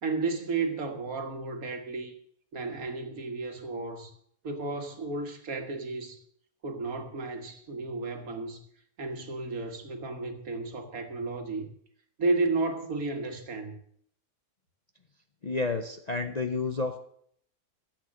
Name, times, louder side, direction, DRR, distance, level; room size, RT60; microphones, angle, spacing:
voice 1, 0.0-2.1 2.5-4.1 4.4-6.2 6.6-8.6 9.0-11.7 12.2-13.8, right 3 dB, 70° right, 2.0 m, -32 dB
voice 2, 15.4-17.0, left 3 dB, 40° left, 0.6 m, -30 dB
13.5 x 8.1 x 6.4 m
omnidirectional pair, 1.6 m